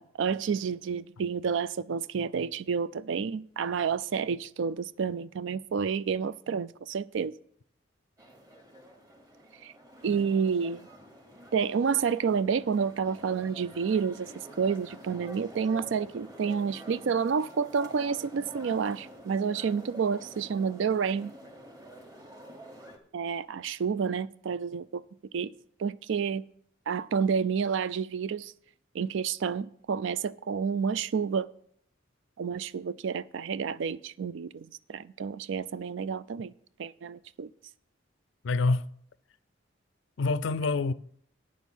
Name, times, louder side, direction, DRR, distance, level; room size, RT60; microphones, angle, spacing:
voice 1, 0.0-7.3 9.6-9.7 10.0-10.9 11.5-14.3 14.6-21.3 23.1-25.0 25.3-25.5 25.8-26.4 26.9-28.5 28.9-31.5 32.4-36.5 36.8-37.5, right 6 dB, 70° right, 0.4 m, -29 dB
sound 1, 8.2-23.0, right 1 dB, 20° right, 1.3 m, -48 dB
voice 2, 38.4-38.9 40.2-40.9, left 3 dB, 70° left, 0.4 m, -26 dB
9.1 x 6.2 x 7.2 m
head